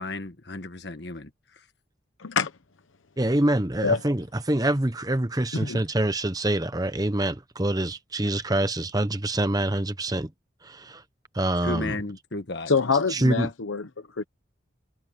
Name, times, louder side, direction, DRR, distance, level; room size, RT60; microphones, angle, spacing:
voice 1, 0.0-1.6 11.6-12.8, left 2 dB, 55° left, 1.6 m, -34 dB
voice 2, 2.2-2.5 3.8-4.0 5.6-5.8 12.7-13.9 14.2-14.3, left 5 dB, 85° left, 0.9 m, -25 dB
voice 3, 3.2-10.3 10.6-11.0 11.3-12.0 13.1-13.5, right 1 dB, 20° right, 1.0 m, -25 dB
head